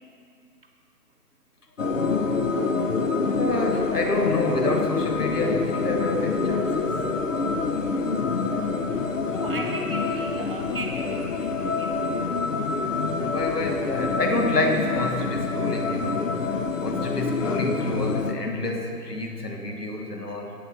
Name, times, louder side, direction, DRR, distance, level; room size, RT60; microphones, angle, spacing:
sound 1, 1.8-18.3, left 4 dB, 55° left, 0.7 m, -26 dB
voice 1, 3.2-7.0 13.2-16.5 16.8-20.5, left 2 dB, 80° left, 3 dB, 1.5 m, -28 dB
voice 2, 9.3-12.1, right 2 dB, 35° right, 1 dB, 0.8 m, -36 dB
8.5 x 7.7 x 5.6 m, 2.4 s
figure-of-eight pair, 155°, 47 cm